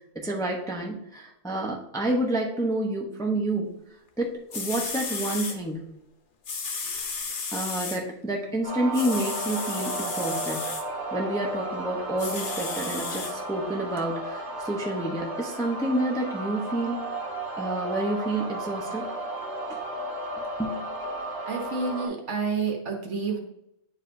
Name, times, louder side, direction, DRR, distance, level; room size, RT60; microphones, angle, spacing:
voice 1, 0.1-3.7 4.2-5.8 7.5-10.7 11.1-17.0 17.6-19.1 19.7-19.8 20.6-20.8, right 1 dB, 5° left, -1 dB, 0.8 m, -29 dB
sound 1, 4.2-4.3 4.5-5.6 6.4-8.0 8.9-10.8 12.2-13.3 14.0-14.1, left 4 dB, 45° left, 0.8 m, -33 dB
sound 2, 8.6-22.1, right 2 dB, 70° left, 2.6 m, -34 dB
voice 2, 21.4-23.4, right 5 dB, 55° right, 2 dB, 1.3 m, -29 dB
10.0 x 4.8 x 2.7 m, 0.80 s
omnidirectional pair, 1.5 m